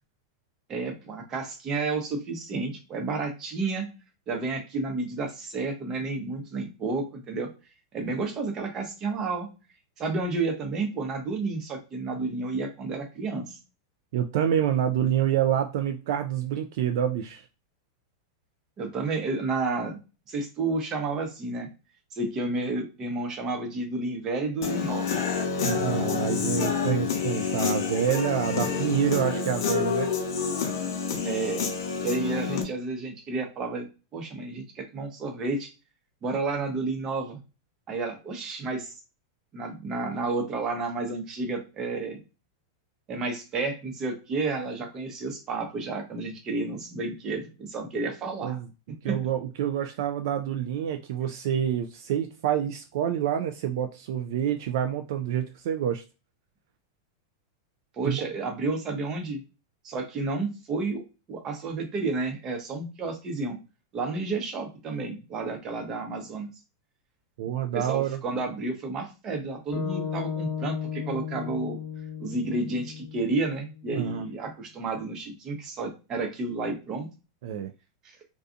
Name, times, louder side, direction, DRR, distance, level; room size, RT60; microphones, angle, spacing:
voice 1, 0.7-3.9 4.3-7.5 7.9-9.5 10.0-13.6 18.8-20.0 20.3-21.7 22.1-25.1 31.2-31.6 32.0-33.9 34.1-35.7 36.2-37.4 37.9-38.9 39.5-42.2 43.1-48.6 48.9-49.2 58.0-59.4 59.8-61.0 61.3-63.6 63.9-66.5 67.7-71.8 72.2-77.1, right 3 dB, 25° right, 0.7 m, -31 dB
voice 2, 14.1-17.5 25.6-30.1 48.4-48.7 49.0-56.0 58.0-58.2 67.4-68.2 73.9-74.2 77.4-77.7, right 9 dB, 55° right, 0.3 m, -27 dB
Human voice / Guitar, 24.6-32.6, left 6 dB, 70° left, 0.8 m, -28 dB
sound 1, 69.7-74.0, left 7 dB, 15° left, 1.0 m, -35 dB
2.6 x 2.3 x 2.5 m
supercardioid pair, 160°, 2 cm